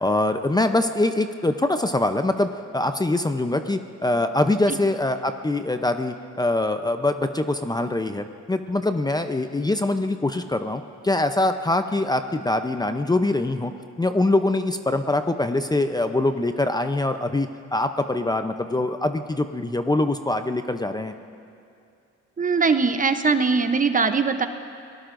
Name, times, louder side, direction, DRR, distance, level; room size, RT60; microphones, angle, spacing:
voice 1, 0.0-13.7 14.0-21.1, left 2 dB, 15° left, 8 dB, 0.6 m, -23 dB
voice 2, 22.4-24.5, right 4 dB, 25° right, 9 dB, 0.7 m, -21 dB
29.0 x 18.5 x 2.6 m, 2.5 s
cardioid pair, 90°, 30 cm